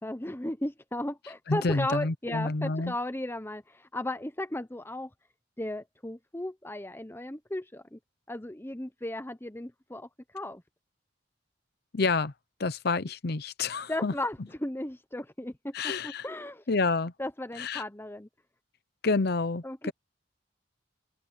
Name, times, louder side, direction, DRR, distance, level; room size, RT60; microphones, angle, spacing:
voice 1, 0.0-5.1 5.6-8.0 8.3-10.1 10.3-10.6 13.9-16.6 17.2-18.3 19.6-19.9, left 1 dB, 15° left, 1.0 m, -35 dB
voice 2, 1.5-2.9 11.9-12.3 12.6-14.1 15.7-16.3 16.7-17.1 17.6-17.8 19.0-19.9, left 3 dB, 60° left, 0.7 m, -28 dB
open air
head